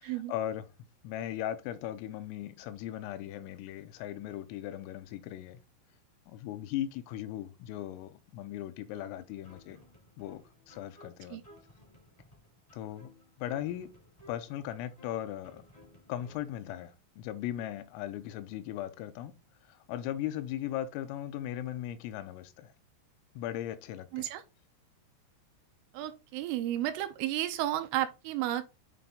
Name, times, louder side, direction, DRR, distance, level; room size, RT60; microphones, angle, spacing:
voice 1, 0.3-0.6 1.0-5.6 6.3-9.8 10.2-11.4 12.7-13.1 13.4-13.9 14.3-15.6 16.1-19.3 19.6-22.7 23.4-24.2, left 12 dB, 90° left, 3.3 m, -38 dB
sound 1, 8.9-16.9, left 1 dB, 30° left, 0.6 m, -58 dB
voice 2, 25.9-28.6, right 13 dB, 85° right, 3.2 m, -32 dB
8.9 x 3.4 x 3.9 m
omnidirectional pair, 5.9 m